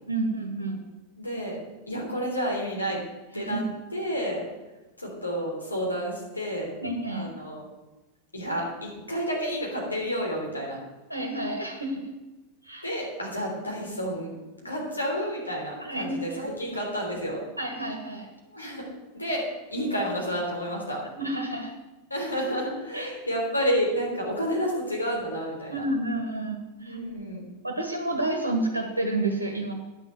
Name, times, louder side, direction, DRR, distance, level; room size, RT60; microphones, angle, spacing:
voice 1, 0.1-0.8 3.3-3.6 6.8-7.3 11.1-12.1 12.6-12.9 15.8-16.4 17.6-18.3 21.2-21.7 22.9-23.1 25.7-27.0 27.6-29.7, right 2 dB, 85° right, 2 dB, 1.5 m, -30 dB
voice 2, 1.2-1.6 1.9-3.0 3.3-3.6 3.9-4.5 5.0-6.7 7.1-7.6 8.3-10.8 12.8-17.4 18.5-18.8 19.1-21.0 22.1-25.8 26.8-27.5, equal, 85° left, -1 dB, 3.4 m, -30 dB
9.9 x 6.7 x 7.9 m, 1.1 s
figure-of-eight pair, 90°, 0 cm